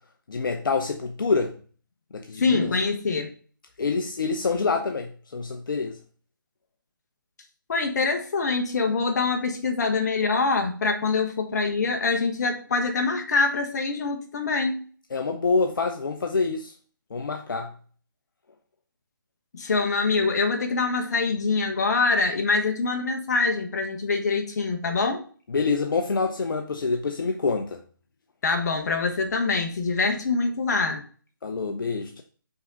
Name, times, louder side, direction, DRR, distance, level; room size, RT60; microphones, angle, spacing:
voice 1, 0.3-1.6 2.1-2.7 3.8-6.0 15.1-16.7 17.1-17.7 25.5-27.8 31.4-32.2, left 4 dB, 70° left, 0.7 m, -26 dB
voice 2, 2.4-3.3 7.7-14.8 19.5-25.3 28.4-31.0, left 4 dB, 50° left, 1.2 m, -24 dB
5.4 x 3.7 x 4.6 m
figure-of-eight pair, 150°, 12 cm